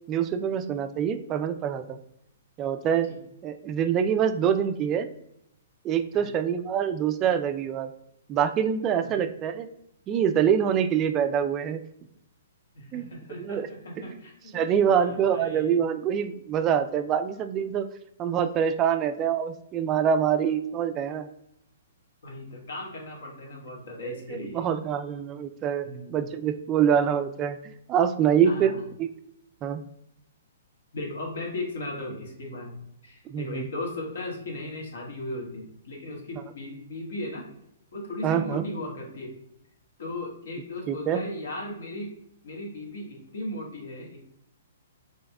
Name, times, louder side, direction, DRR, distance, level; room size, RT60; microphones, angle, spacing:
voice 1, 0.1-2.0 2.6-3.1 3.4-5.1 5.8-7.9 8.3-9.7 10.1-11.8 12.9-13.1 13.4-13.7 14.0-14.2 14.5-17.9 18.2-21.3 24.0-27.6 27.9-28.7 29.0-29.1 29.6-29.8 33.3-33.7 38.2-38.7 40.9-41.2, right 8 dB, 25° right, 9 dB, 0.3 m, -25 dB
voice 2, 12.7-14.6 14.9-15.7 22.2-24.7 25.8-26.2 28.4-28.8 30.9-37.4 37.9-39.3 40.0-42.1 42.4-44.2, left 2 dB, 65° left, 0 dB, 1.4 m, -37 dB
5.3 x 3.4 x 2.2 m, 0.77 s
figure-of-eight pair, 120°, 0 cm